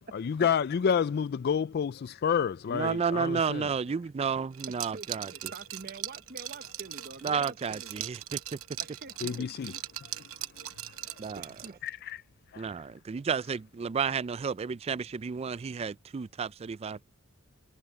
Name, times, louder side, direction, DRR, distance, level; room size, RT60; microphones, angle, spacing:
voice 1, 0.1-3.7 9.2-9.7 11.8-12.2 12.5-12.7, left 7 dB, 50° left, 0.3 m, -29 dB
voice 2, 2.7-5.3 7.2-8.6 11.2-11.5 12.6-17.1, right 6 dB, 30° right, 0.3 m, -32 dB
Liquid, 4.5-11.9, right 13 dB, 75° right, 0.9 m, -40 dB
voice 3, 4.7-8.1 8.8-9.5 11.4-11.8, right 3 dB, 45° right, 1.2 m, -46 dB
head